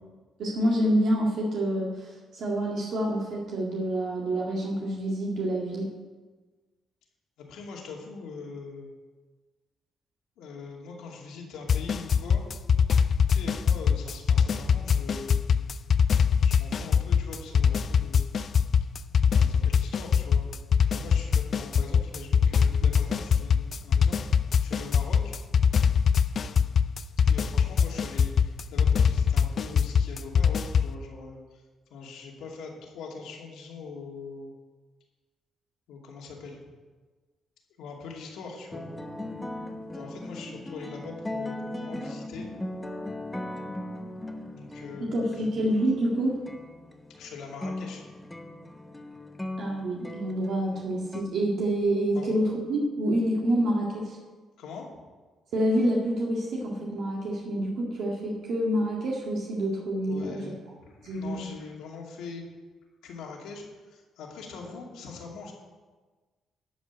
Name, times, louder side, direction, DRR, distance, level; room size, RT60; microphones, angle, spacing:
voice 1, 0.4-5.9 45.0-46.4 49.6-54.2 55.5-60.4 61.0-61.5, right 1 dB, 70° right, -2 dB, 2.0 m, -27 dB
voice 2, 7.4-8.9 10.4-12.4 13.3-15.4 16.4-18.5 19.4-20.5 20.9-25.3 27.2-31.6 31.9-34.5 35.9-36.6 37.8-38.9 39.9-42.5 44.5-45.4 47.2-48.0 52.1-52.3 54.6-54.8 60.1-62.5 63.0-65.5, left 4 dB, 85° left, -1 dB, 2.5 m, -42 dB
sound 1, 11.7-30.9, left 7 dB, 55° left, 0.5 m, -23 dB
sound 2, 38.7-51.2, left 1 dB, 10° left, 1.0 m, -38 dB
12.5 x 5.3 x 8.4 m, 1.3 s
cardioid pair, 90°, 0 cm